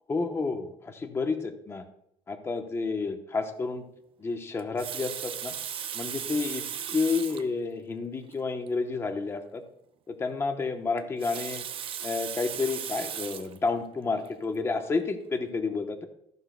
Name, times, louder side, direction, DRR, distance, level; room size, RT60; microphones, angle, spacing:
voice 1, 0.1-1.8 2.3-3.8 4.2-5.5 5.9-6.6 6.9-9.6 10.1-11.6 12.0-16.0, left 4 dB, 20° left, 6 dB, 0.9 m, -30 dB
Water tap faucet, 4.6-7.5 8.3-8.4 8.7-8.8 11.0-13.6 14.2-14.5, right 9 dB, 45° right, 0.7 m, -36 dB
14.5 x 10.5 x 2.2 m, 0.74 s
cardioid pair, 155°, 13 cm